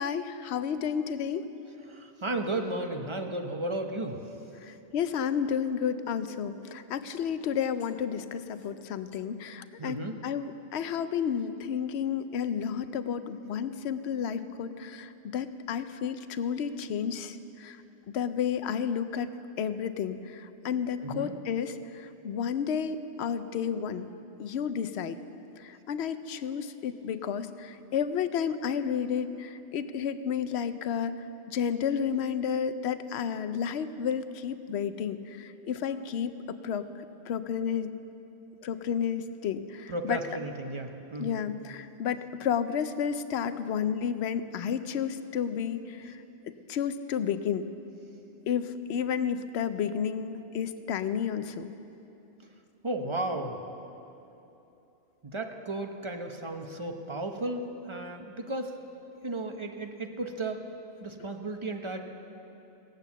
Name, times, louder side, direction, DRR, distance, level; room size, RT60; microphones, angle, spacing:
voice 1, 0.0-1.5 4.6-10.0 10.2-17.8 18.1-19.3 19.6-24.1 24.4-25.2 25.6-31.1 31.5-36.9 37.3-37.9 38.6-40.2 41.2-46.1 46.7-47.7 48.5-51.7, left 7 dB, 70° left, 12 dB, 0.9 m, -31 dB
voice 2, 1.9-4.2 9.8-10.1 21.0-21.3 39.9-41.5 52.8-53.6 55.2-58.7 59.2-60.6 61.0-62.0, right 2 dB, 30° right, 4 dB, 0.8 m, -34 dB
17.0 x 9.1 x 7.1 m, 2.9 s
omnidirectional pair, 1.2 m